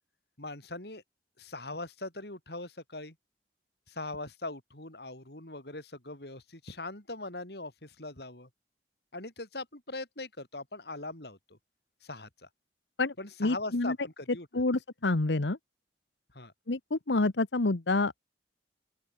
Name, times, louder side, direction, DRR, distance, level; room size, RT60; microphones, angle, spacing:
voice 1, 0.4-1.0 1.4-3.1 3.9-8.5 9.1-11.6 12.0-12.5 13.2-14.6 16.3-16.5, left 2 dB, 65° left, 4.6 m, -41 dB
voice 2, 13.4-14.0 14.5-15.6 16.7-18.2, left 2 dB, 90° left, 1.2 m, -28 dB
open air
head